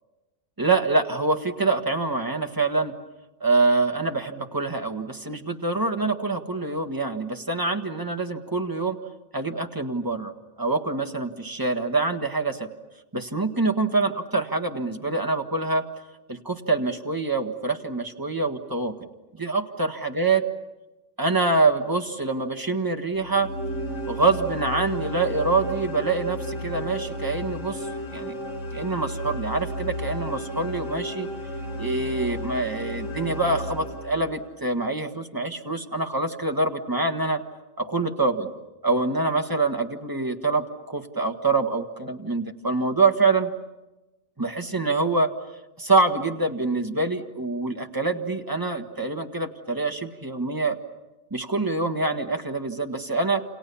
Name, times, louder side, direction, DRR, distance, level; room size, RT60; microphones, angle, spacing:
voice 1, 0.6-2.9 3.4-9.0 9.3-10.3 10.6-12.7 13.1-15.8 16.3-19.1 19.4-20.4 21.2-23.5 24.1-28.3 28.7-31.3 31.8-37.4 37.8-38.5 38.8-43.5 44.4-45.3 45.8-50.8 51.3-53.4, right 3 dB, 15° right, 5 dB, 1.6 m, -25 dB
sound 1, 23.1-34.5, equal, 60° left, 4.7 m, -33 dB
28.5 x 28.5 x 7.1 m, 1.1 s
omnidirectional pair, 1.4 m